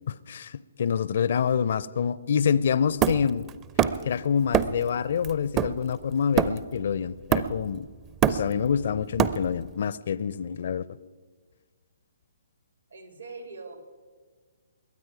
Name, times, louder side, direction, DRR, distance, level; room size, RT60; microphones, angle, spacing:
voice 1, 0.1-3.5 4.1-7.9 8.3-10.9, left 7 dB, 55° left, 19 dB, 0.5 m, -26 dB
Hammer, 3.0-4.1 4.5-4.9 5.2-6.8 7.3-7.8 8.0-9.7, right 9 dB, 20° right, 0.5 m, -25 dB
voice 2, 12.9-13.9, right 3 dB, 80° right, 5 dB, 2.9 m, -42 dB
21.5 x 9.2 x 4.9 m, 1.5 s
figure-of-eight pair, 130°, 0 cm